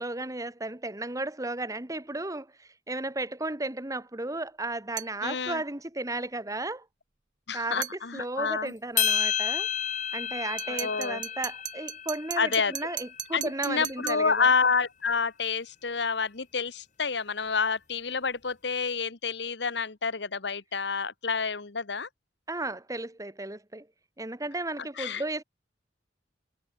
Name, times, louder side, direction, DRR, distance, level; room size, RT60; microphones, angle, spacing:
voice 1, 0.0-6.8 7.5-7.9 8.1-9.7 10.1-14.5 22.5-23.9 24.2-25.4, right 2 dB, 20° right, 1.5 m, -34 dB
sound 1, 5.0-5.2 7.8-8.0 10.6-14.3, right 12 dB, 45° right, 0.7 m, -38 dB
voice 2, 5.2-5.6 7.5-8.7 10.7-11.2 12.4-12.9 13.3-22.1 25.0-25.2, left 5 dB, 70° left, 1.3 m, -28 dB
sound 2, 9.0-13.4, left 9 dB, 45° left, 1.8 m, -31 dB
head